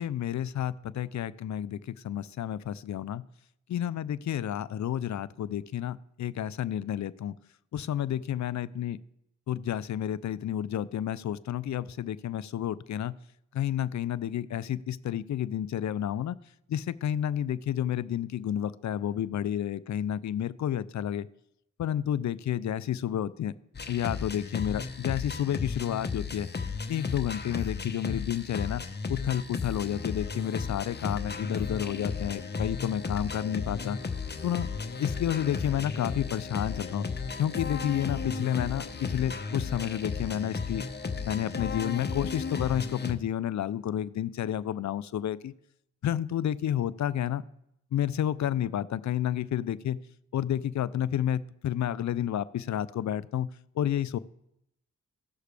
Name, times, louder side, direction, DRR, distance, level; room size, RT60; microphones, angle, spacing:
voice 1, 0.0-3.2 3.7-7.3 7.7-9.0 9.5-13.1 13.5-16.4 16.7-21.3 21.8-23.6 23.9-26.5 26.9-28.8 29.1-34.0 34.4-34.7 35.0-37.1 37.4-40.9 41.3-45.5 46.0-47.4 47.9-50.0 50.3-53.5 53.8-54.2, left 10 dB, 65° left, 18 dB, 0.5 m, -30 dB
sound 1, 23.7-43.1, left 4 dB, 35° left, 0.8 m, -34 dB
16.0 x 6.6 x 3.4 m, 0.79 s
cardioid pair, 65°, 31 cm